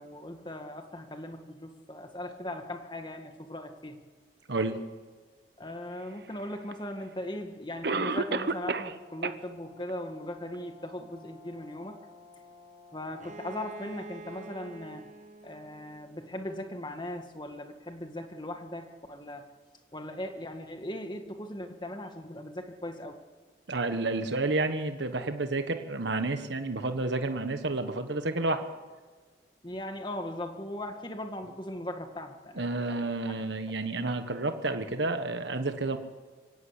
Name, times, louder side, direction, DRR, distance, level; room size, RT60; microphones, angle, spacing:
voice 1, 0.0-4.0 5.6-12.0 12.9-15.0 15.4-19.4 19.9-23.2 29.6-33.4, left 1 dB, 25° left, 5 dB, 1.9 m, -39 dB
voice 2, 4.5-4.8 23.7-28.7 32.6-36.0, right 2 dB, 75° right, 7 dB, 1.4 m, -30 dB
Cough, 6.7-6.8 7.8-9.0 9.2-9.3 9.9-10.0 10.5-10.6, right 3 dB, 60° right, 0.9 m, -29 dB
Brass instrument, 7.7-14.0, left 3 dB, 80° left, 6.1 m, -54 dB
Bowed string instrument, 13.2-16.9, right 2 dB, 40° right, 1.3 m, -47 dB
23.5 x 17.0 x 8.2 m, 1.4 s
head